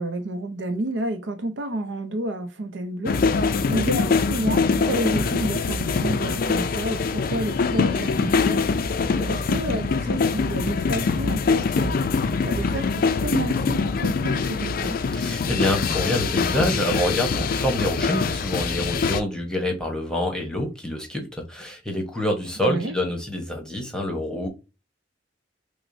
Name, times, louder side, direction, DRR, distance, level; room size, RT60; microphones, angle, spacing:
voice 1, 0.0-3.2 3.7-8.6 9.2-12.1 12.4-15.0 22.6-22.9, right 1 dB, 75° right, 0.6 m, -30 dB
sound 1, 3.0-19.2, left 4 dB, 50° left, 0.4 m, -23 dB
voice 2, 15.1-24.5, left 1 dB, 5° left, 1.0 m, -26 dB
6.1 x 2.1 x 2.6 m
head